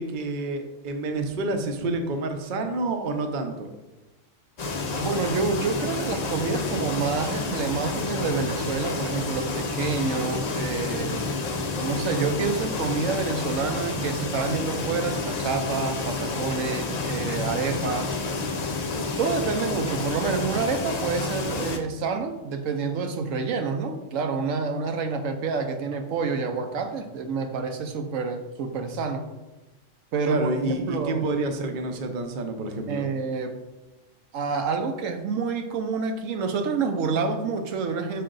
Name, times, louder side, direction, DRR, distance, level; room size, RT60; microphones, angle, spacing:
voice 1, 0.0-3.7 30.3-33.0, right 2 dB, 45° right, 5 dB, 0.8 m, -28 dB
sound 1, 4.6-21.8, left 3 dB, 45° left, 0.5 m, -29 dB
voice 2, 4.9-11.2 11.8-18.2 19.2-29.3 30.1-31.2 32.9-33.6 34.3-38.2, right 4 dB, 75° right, 6 dB, 1.0 m, -28 dB
6.5 x 5.0 x 3.8 m, 1.1 s
omnidirectional pair, 1.4 m